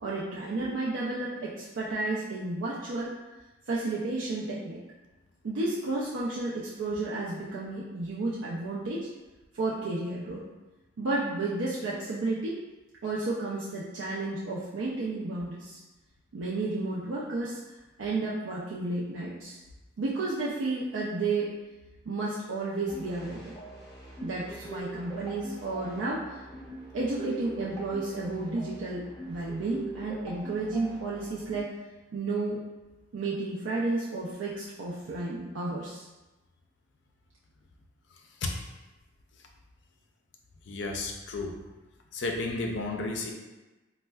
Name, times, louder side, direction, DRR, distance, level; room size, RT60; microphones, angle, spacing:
voice 1, 0.0-3.1 3.7-4.8 5.4-9.1 9.5-10.4 11.0-12.6 13.0-15.8 16.3-17.6 18.0-19.6 20.0-21.5 22.1-23.5 24.2-26.4 26.9-31.7 32.1-32.6 33.1-36.0, right 2 dB, 80° right, -6 dB, 0.4 m, -32 dB
sound 1, 22.9-31.6, right 2 dB, 15° left, 0.6 m, -43 dB
voice 2, 40.7-41.6 42.1-43.3, left 3 dB, 65° left, 2 dB, 0.4 m, -32 dB
4.2 x 2.1 x 2.2 m, 1.1 s
head